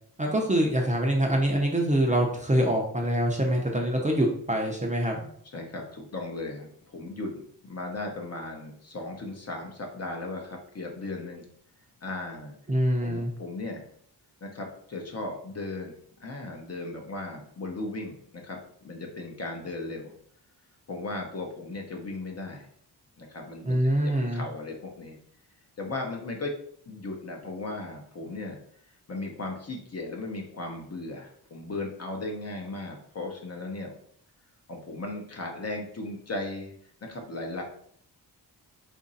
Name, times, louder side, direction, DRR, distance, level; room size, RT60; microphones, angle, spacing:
voice 1, 0.2-5.3 12.7-13.3 23.7-24.4, right 1 dB, 20° right, 0 dB, 0.5 m, -25 dB
voice 2, 5.4-11.4 12.0-12.5 13.0-13.8 14.4-15.9 16.2-20.1 20.9-22.7 23.2-25.2 25.8-26.5 26.9-28.6 29.1-33.9 34.7-36.7 37.0-37.6, left 2 dB, 40° left, 2 dB, 0.7 m, -36 dB
2.9 x 2.6 x 3.9 m, 0.64 s
wide cardioid pair, 105°, 41 cm